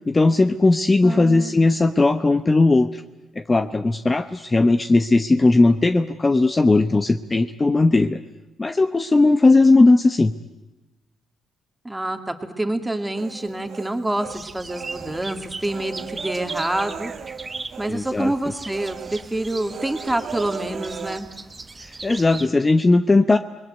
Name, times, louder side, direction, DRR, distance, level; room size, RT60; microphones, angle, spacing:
voice 1, 0.1-3.0 3.4-8.2 8.6-10.3 17.9-18.3 21.8-23.4, left 2 dB, 25° left, 10 dB, 0.9 m, -17 dB
voice 2, 1.0-1.7 11.8-17.1 17.8-21.3, right 1 dB, 10° right, 6 dB, 2.5 m, -27 dB
Human voice, 13.2-14.4 14.7-17.9 18.2-18.4 18.7-21.2, right 7 dB, 55° right, 1.4 m, -37 dB
sound 1, 14.3-22.5, right 3 dB, 25° right, 1.3 m, -38 dB
28.5 x 20.5 x 9.3 m, 1.1 s
cardioid pair, 90°, 0 cm